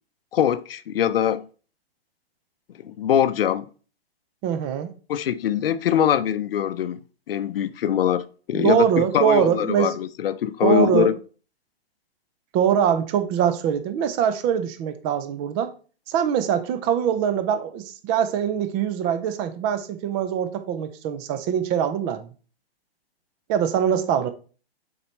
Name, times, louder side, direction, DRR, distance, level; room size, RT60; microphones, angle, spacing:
voice 1, 0.3-1.5 2.8-3.7 5.1-7.0 7.3-11.1, left 9 dB, 60° left, 0.7 m, -22 dB
voice 2, 4.4-4.9 8.5-9.9 10.6-11.1 12.5-15.7 16.1-22.3 23.5-24.3, right 9 dB, 15° right, 0.4 m, -23 dB
7.1 x 4.6 x 3.1 m
hypercardioid pair, 135°, 32 cm